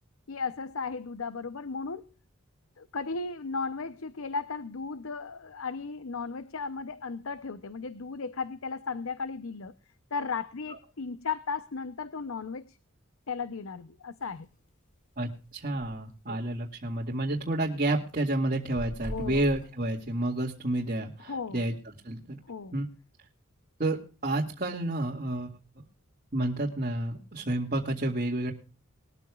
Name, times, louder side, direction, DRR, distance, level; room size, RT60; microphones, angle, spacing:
voice 1, 0.3-2.1 2.8-9.7 10.1-12.8 13.3-14.5 16.3-16.4 19.1-19.5 21.2-21.6 22.5-22.7, left 4 dB, 75° left, 13 dB, 0.7 m, -35 dB
sound 1, 14.2-14.5 14.9-15.0 15.2-15.3 15.6-16.0 16.5-16.6 17.0-17.8 18.1-20.3, equal, 35° left, 2.9 m, -42 dB
voice 2, 15.2-21.7 22.0-22.2 22.7-22.9 23.8-25.5 26.3-28.5, right 1 dB, 40° right, -4 dB, 2.2 m, -30 dB
21.5 x 13.5 x 2.4 m, 0.34 s
head